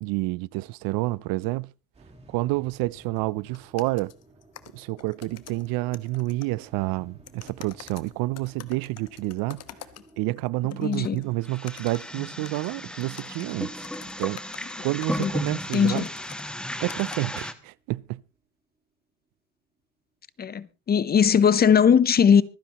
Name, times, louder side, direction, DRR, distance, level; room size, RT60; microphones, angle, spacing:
voice 1, 0.0-1.7 2.3-4.1 4.7-9.6 10.2-13.9 14.2-14.4 14.8-16.0 16.8-18.2, right 20 dB, 65° right, 0.6 m, -29 dB
sound 1, 1.9-18.3, right 2 dB, 15° right, 4.0 m, -55 dB
sound 2, 3.2-3.3 3.5-6.6 7.3-10.4 10.7-17.2, left 11 dB, 45° left, 1.2 m, -47 dB
voice 2, 10.8-11.2 15.2-15.3 15.7-16.1 20.4-22.4, left 7 dB, 25° left, 0.7 m, -19 dB
sound 3, 11.4-17.5, left 1 dB, ahead, 1.3 m, -34 dB
25.0 x 10.0 x 3.0 m
cardioid pair, 120°, 37 cm